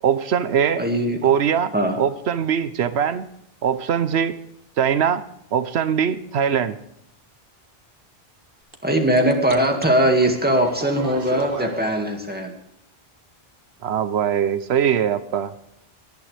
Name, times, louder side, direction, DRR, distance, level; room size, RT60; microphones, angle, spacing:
voice 1, 0.0-0.8 1.2-1.7 2.0-3.3 3.6-4.4 4.8-5.2 5.5-6.8 13.8-15.5, right 8 dB, 85° right, 13 dB, 1.0 m, -21 dB
voice 2, 0.8-1.2 1.7-2.0 8.8-12.5, right 1 dB, 10° right, 3 dB, 2.0 m, -20 dB
sound 1, 8.7-8.8 9.0-11.9, right 3 dB, 60° right, 1.7 m, -35 dB
18.0 x 11.5 x 3.4 m, 0.77 s
omnidirectional pair, 1.1 m